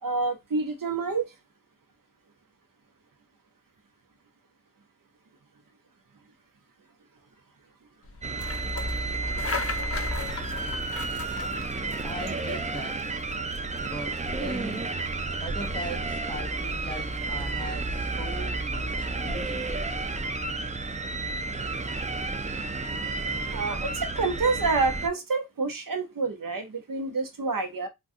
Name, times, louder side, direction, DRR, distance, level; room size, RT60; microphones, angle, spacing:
voice 1, 0.0-1.3 23.5-27.9, right 4 dB, 85° right, 0.7 m, -28 dB
sound 1, 8.0-20.3, left 3 dB, 45° left, 0.6 m, -39 dB
sound 2, 8.2-25.1, right 3 dB, 25° right, 0.3 m, -31 dB
voice 2, 12.0-12.9 13.8-14.8 15.4-19.9, right 1 dB, 15° left, 1.1 m, -39 dB
2.5 x 2.2 x 3.6 m
wide cardioid pair, 45°, 33 cm